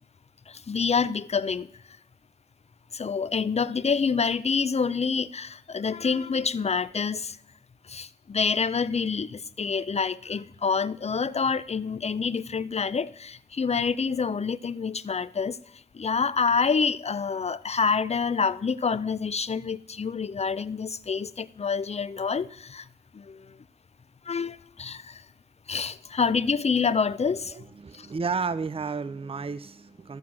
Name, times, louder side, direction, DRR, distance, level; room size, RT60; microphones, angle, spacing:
voice 1, 0.5-1.7 2.9-7.4 7.8-15.6 15.9-22.9 23.1-23.6 24.3-25.2 25.7-27.6 27.9-28.1, left 5 dB, 35° left, 0.4 m, -27 dB
voice 2, 27.5-30.2, right 5 dB, 30° right, 0.4 m, -32 dB
13.5 x 4.6 x 7.3 m
wide cardioid pair, 60°, 18 cm